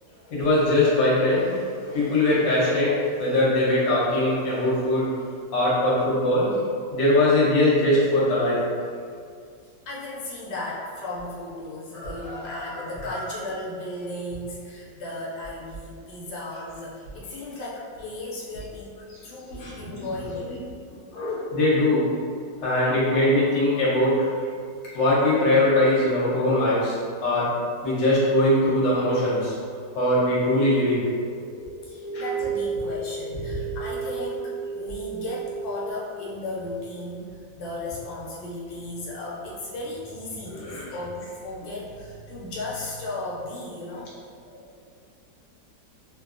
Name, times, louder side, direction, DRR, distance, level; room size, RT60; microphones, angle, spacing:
voice 1, 0.3-1.6 1.8-5.2 5.5-6.5 6.9-8.6 11.9-13.3 19.1-19.2 19.6-20.1 20.4-20.5 21.1-22.1 22.6-24.3 24.9-27.5 27.8-29.6 29.9-31.0 32.1-32.2 40.5-40.8, left 1 dB, 50° left, -7 dB, 1.0 m, -22 dB
voice 2, 9.9-20.6 31.8-44.1, left 1 dB, 80° left, -5 dB, 1.3 m, -35 dB
sound 1, 30.4-35.9, right 5 dB, 10° left, 0.6 m, -33 dB
3.0 x 2.6 x 2.5 m, 2.2 s
omnidirectional pair, 2.0 m